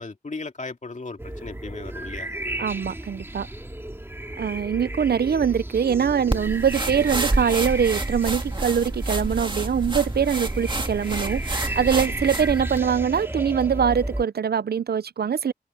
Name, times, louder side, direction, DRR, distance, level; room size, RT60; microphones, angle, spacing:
voice 1, 0.0-2.3, left 3 dB, 45° left, 2.5 m, -36 dB
sound 1, 1.2-14.2, right 1 dB, 15° right, 2.1 m, -33 dB
voice 2, 2.6-3.5 4.4-15.5, right 7 dB, 70° right, 0.5 m, -23 dB
sound 2, 6.3-12.8, right 2 dB, 30° right, 2.3 m, -29 dB
open air
wide cardioid pair, 70°, 17 cm